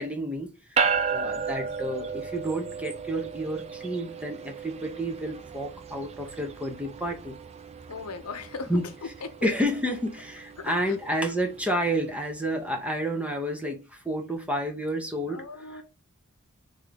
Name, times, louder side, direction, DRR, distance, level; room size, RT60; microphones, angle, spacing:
voice 1, 0.0-7.4 8.7-8.9 9.4-15.4 15.7-15.8, equal, 5° right, 0.8 m, -30 dB
sound 1, 0.8-12.3, right 5 dB, 30° right, 0.4 m, -34 dB
voice 2, 1.2-1.5 7.9-9.5 10.6-11.1 15.3-15.8, left 4 dB, 85° left, 0.7 m, -39 dB
3.6 x 3.3 x 3.5 m
head